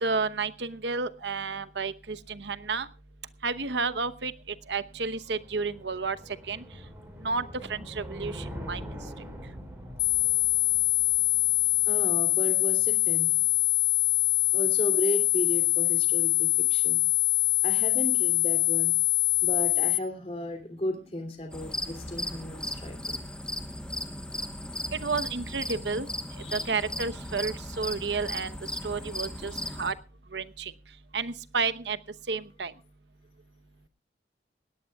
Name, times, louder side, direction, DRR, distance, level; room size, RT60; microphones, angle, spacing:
voice 1, 0.0-2.9 3.4-4.3 4.7-6.2 6.5-6.6 7.2-9.0 25.0-26.1 26.5-28.5 28.8-29.5 29.8-29.9 30.3-30.7 31.1-32.0 32.3-32.7, right 4 dB, 80° right, 13 dB, 0.9 m, -31 dB
sound 1, 4.9-12.1, equal, 10° right, 5.3 m, -43 dB
sound 2, 10.0-20.0, left 21 dB, 80° left, 0.7 m, -24 dB
voice 2, 11.9-13.5 14.5-17.0 17.6-18.9 19.4-23.2 26.4-26.7 29.4-29.6, left 1 dB, 35° left, 7 dB, 2.9 m, -34 dB
sound 3, 21.5-29.9, left 1 dB, 5° left, 1.0 m, -36 dB
20.0 x 17.5 x 2.3 m, 0.35 s
head